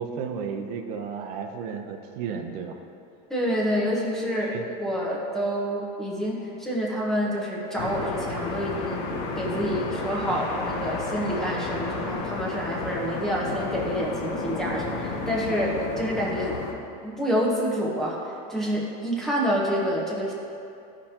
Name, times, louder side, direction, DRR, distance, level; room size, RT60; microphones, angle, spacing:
voice 1, 0.0-2.8 4.4-4.6, right 6 dB, 75° right, 4 dB, 0.8 m, -33 dB
voice 2, 3.3-9.0 9.4-16.6 17.0-20.3, equal, ahead, -5 dB, 1.0 m, -27 dB
sound 1, 7.8-16.7, left 3 dB, 50° left, 1.0 m, -32 dB
15.0 x 5.1 x 2.9 m, 2.6 s
cardioid pair, 180°, 20 cm